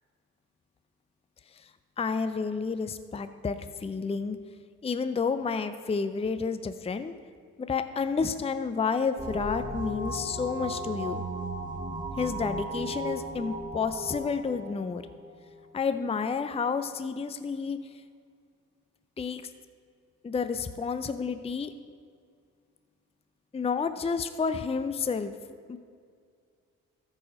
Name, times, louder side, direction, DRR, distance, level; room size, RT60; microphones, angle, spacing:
voice 1, 2.0-4.4 4.8-7.1 7.6-11.2 12.2-15.0 15.7-17.8 19.2-19.4 20.2-21.7 23.5-25.3 25.7-25.8, left 5 dB, 15° left, 10 dB, 0.5 m, -30 dB
sound 1, 9.2-15.6, right 1 dB, 20° right, 1.3 m, -36 dB
14.0 x 4.9 x 5.1 m, 2.2 s
hypercardioid pair, 50°, 36 cm